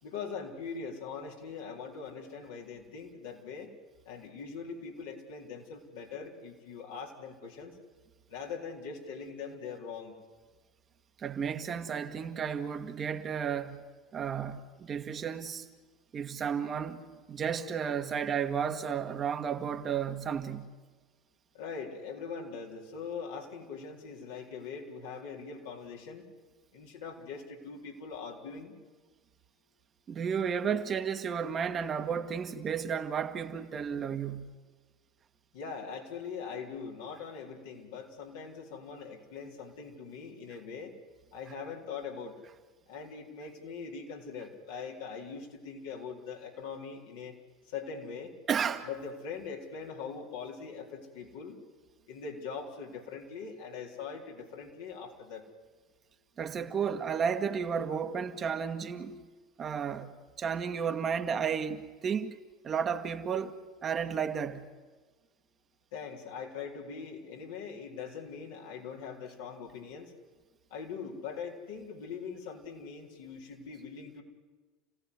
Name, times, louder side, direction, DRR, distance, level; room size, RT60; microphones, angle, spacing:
voice 1, 0.0-3.7 4.0-7.8 8.3-10.2 21.5-26.2 26.7-28.8 35.5-40.9 41.3-42.4 42.9-47.4 47.6-48.3 48.8-51.6 52.1-55.4 65.9-70.1 70.7-74.2, left 5 dB, 70° left, 4.1 m, -42 dB
voice 2, 11.2-13.8 14.1-15.7 16.1-17.0 17.3-20.7 30.1-34.5 48.5-48.9 56.4-59.2 59.6-62.4 62.6-64.7, right 7 dB, 35° right, 1.7 m, -33 dB
29.0 x 16.5 x 9.8 m
hypercardioid pair, 75°, 0 cm